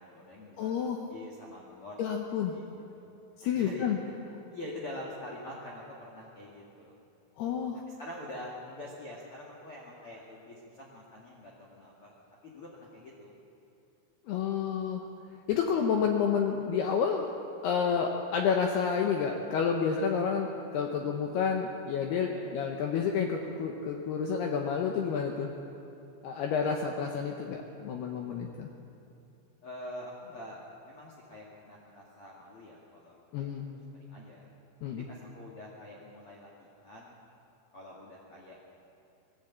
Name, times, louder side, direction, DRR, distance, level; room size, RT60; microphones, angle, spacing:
voice 1, 0.0-2.0 2.3-3.1 3.5-4.2 4.5-7.0 7.9-12.1 12.4-13.4 22.3-22.5 29.6-30.6 30.8-34.5 35.1-37.2 37.7-38.6, left 1 dB, 40° left, -3 dB, 2.1 m, -45 dB
voice 2, 0.6-1.0 2.0-2.5 3.4-4.0 7.4-7.8 14.3-15.0 15.5-17.3 17.6-20.5 20.7-25.5 26.2-28.7 33.3-33.7 34.8-35.0, left 6 dB, 75° left, 2 dB, 2.6 m, -29 dB
20.0 x 15.0 x 8.7 m, 2.8 s
omnidirectional pair, 5.5 m